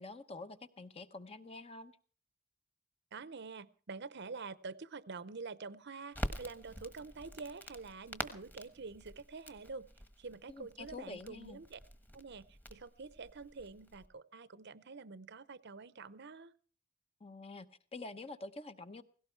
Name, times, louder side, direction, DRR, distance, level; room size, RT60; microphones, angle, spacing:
voice 1, 0.0-2.0 10.5-11.6 17.2-19.0, left 3 dB, 30° left, 0.9 m, -47 dB
voice 2, 3.1-9.9 10.2-11.8 12.1-16.5, right 4 dB, 55° right, 0.7 m, -47 dB
Crackle, 6.1-14.1, equal, 10° left, 1.3 m, -46 dB
17.5 x 17.0 x 4.5 m
head